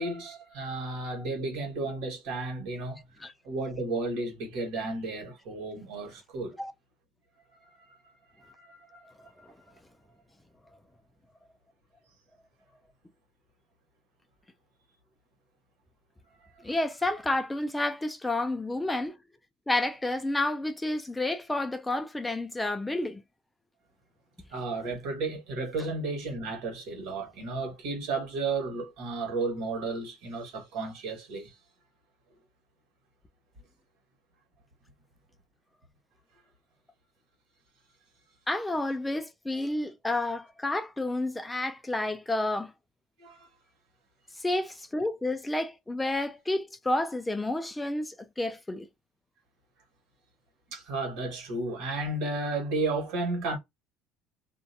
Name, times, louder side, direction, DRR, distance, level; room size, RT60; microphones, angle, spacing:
voice 1, 0.0-3.0 3.4-6.6 7.6-8.0 8.4-9.1 9.4-9.5 16.7-16.8 24.5-31.5 43.2-43.5 50.7-53.6, right 3 dB, 70° right, 1.3 m, -33 dB
voice 2, 16.6-19.1 19.7-23.2 38.5-42.7 44.4-48.9, left 2 dB, 10° left, 0.3 m, -30 dB
2.6 x 2.2 x 2.6 m
cardioid pair, 145°, 0 cm